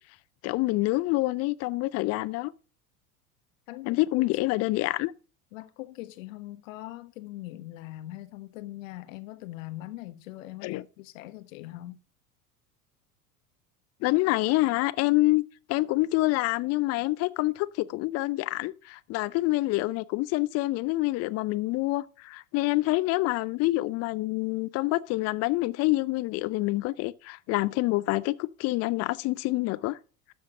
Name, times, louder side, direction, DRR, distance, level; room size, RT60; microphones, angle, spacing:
voice 1, 0.4-2.5 3.9-5.1 10.6-10.8 14.0-15.4 15.7-30.0, left 20 dB, 35° left, 0.5 m, -27 dB
voice 2, 3.7-4.6 5.5-12.0, left 16 dB, 60° left, 1.2 m, -42 dB
12.5 x 7.2 x 3.7 m
figure-of-eight pair, 80°, 45 cm